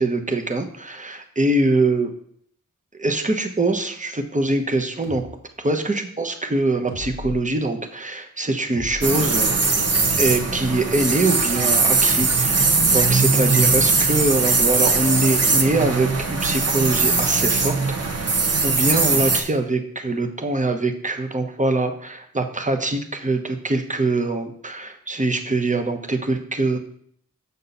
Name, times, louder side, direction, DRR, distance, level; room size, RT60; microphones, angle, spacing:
voice 1, 0.0-2.1 3.0-5.2 5.6-9.6 10.2-17.8 18.0-18.3 18.6-26.8, right 2 dB, 25° right, 5 dB, 0.9 m, -23 dB
sound 1, 5.0-5.3 6.9-7.4 8.7-9.9, left 1 dB, 70° right, 2.2 m, -36 dB
sound 2, 9.0-19.4, right 4 dB, 50° right, 0.9 m, -20 dB
6.8 x 6.3 x 4.1 m, 0.65 s
wide cardioid pair, 65°, 32 cm